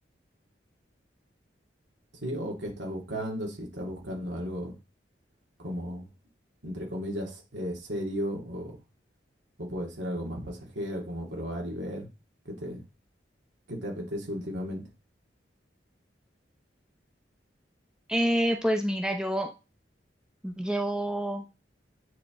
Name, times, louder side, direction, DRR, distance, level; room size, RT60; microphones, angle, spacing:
voice 1, 2.2-4.8 5.6-6.1 6.6-8.8 9.6-12.1 12.4-12.8 13.7-14.8, equal, 90° right, -1 dB, 2.6 m, -35 dB
voice 2, 18.1-19.5 20.4-21.4, equal, 5° right, 3 dB, 0.7 m, -27 dB
9.0 x 3.6 x 3.8 m, 0.29 s
head